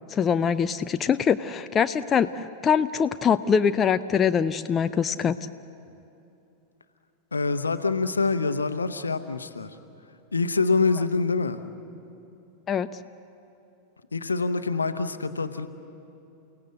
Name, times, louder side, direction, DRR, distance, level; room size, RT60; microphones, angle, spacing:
voice 1, 0.1-5.4 12.7-12.9, left 7 dB, 25° left, 11 dB, 0.5 m, -23 dB
voice 2, 7.3-9.7 10.3-11.6 14.1-15.7, left 4 dB, 75° left, 10 dB, 1.0 m, -25 dB
30.0 x 17.0 x 7.9 m, 2.8 s
figure-of-eight pair, 90°, 0 cm